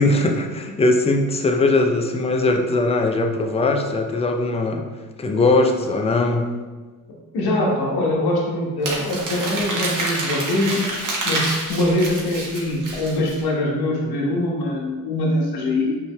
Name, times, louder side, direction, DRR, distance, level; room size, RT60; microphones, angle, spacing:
voice 1, 0.0-4.8 5.2-6.5, left 2 dB, 15° left, 3 dB, 0.5 m, -20 dB
voice 2, 7.3-10.9 11.2-16.0, left 1 dB, 55° left, -2 dB, 1.3 m, -23 dB
Crumpling crinkling, 8.8-13.4, right 2 dB, 40° right, 1.3 m, -27 dB
5.2 x 3.3 x 2.2 m, 1.3 s
hypercardioid pair, 60°, 46 cm